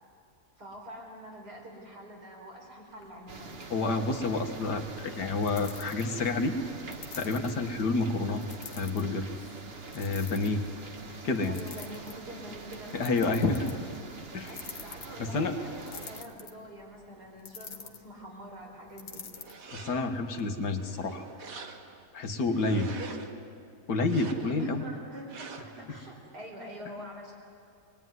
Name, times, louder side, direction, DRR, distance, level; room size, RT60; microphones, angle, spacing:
voice 1, 0.6-3.7 11.5-13.9 14.5-19.2 22.9-23.2 24.6-27.3, right 1 dB, 75° right, 0 dB, 5.2 m, -45 dB
sound 1, 2.9-20.4, left 6 dB, 60° left, 1.6 m, -50 dB
sound 2, 3.3-16.2, right 4 dB, 40° right, 1.4 m, -45 dB
voice 2, 3.7-6.6 7.2-8.4 8.8-9.3 9.9-10.6 11.2-11.6 12.9-13.8 14.3-14.5 15.2-15.6 19.7-21.2 22.1-22.9 23.9-24.9 25.9-26.0, left 3 dB, 85° left, 5 dB, 2.2 m, -29 dB
sound 3, 19.3-20.2 20.7-22.1 22.5-23.4 24.0-24.7 25.3-25.9, right 4 dB, 60° right, 1.8 m, -46 dB
21.5 x 21.0 x 9.5 m, 2.4 s
omnidirectional pair, 1.7 m